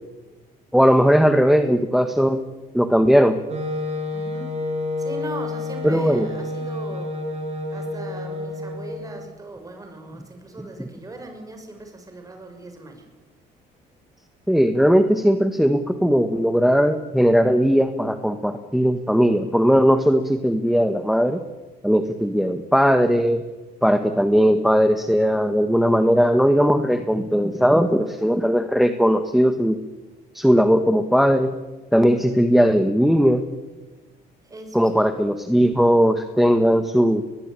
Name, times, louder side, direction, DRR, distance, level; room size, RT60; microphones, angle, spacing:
voice 1, 0.7-2.4 2.7-3.4 5.8-6.3 10.6-10.9 14.5-21.4 21.8-23.4 23.8-29.8 30.3-31.5 31.9-33.5 34.7-37.2, equal, ahead, 9 dB, 1.5 m, -18 dB
Wind instrument woodwind instrument, 3.5-9.2, left 2 dB, 40° right, 7.3 m, -29 dB
voice 2, 4.1-4.5 5.0-7.1 7.7-13.1 34.4-35.0, right 2 dB, 20° right, 5 dB, 6.4 m, -39 dB
22.0 x 21.0 x 9.1 m, 1.2 s
cardioid pair, 110°, 17 cm